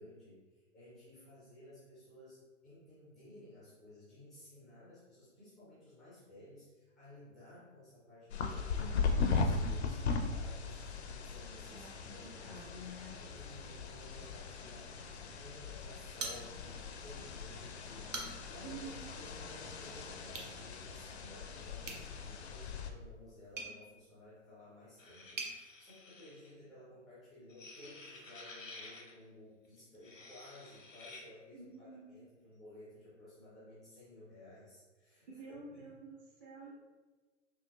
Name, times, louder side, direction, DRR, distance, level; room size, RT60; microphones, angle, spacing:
voice 1, 0.0-12.6 13.2-18.8 19.1-35.9, left 1 dB, ahead, -10 dB, 0.3 m, -56 dB
sound 1, 8.3-22.9, left 4 dB, 60° left, 0.5 m, -38 dB
voice 2, 11.7-13.2 18.6-19.1 31.5-32.3 35.3-36.7, right 2 dB, 50° right, -11 dB, 1.4 m, -50 dB
sound 2, 16.2-16.9 17.3-17.4 17.9-18.6 20.3-20.5 21.8-25.6, right 3 dB, 75° right, 0.8 m, -46 dB
sound 3, 25.0-26.5 27.5-29.1 29.9-31.2, left 3 dB, 85° left, 0.8 m, -52 dB
4.4 x 2.6 x 2.4 m, 1.2 s
figure-of-eight pair, 110°, 38 cm